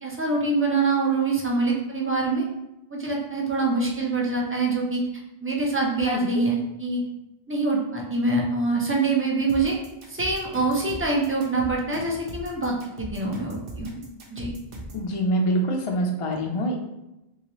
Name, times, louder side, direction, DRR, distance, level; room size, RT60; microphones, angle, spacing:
voice 1, 0.0-2.4 2.9-5.1 5.4-7.0 7.5-9.7 10.1-14.0 14.3-14.5, right 3 dB, 20° right, -2 dB, 0.3 m, -25 dB
sound 1, 9.5-15.1, right 1 dB, 65° right, 0.8 m, -39 dB
voice 2, 14.9-16.8, right 1 dB, 50° left, 1 dB, 0.4 m, -25 dB
3.0 x 2.8 x 2.9 m, 0.93 s
omnidirectional pair, 1.0 m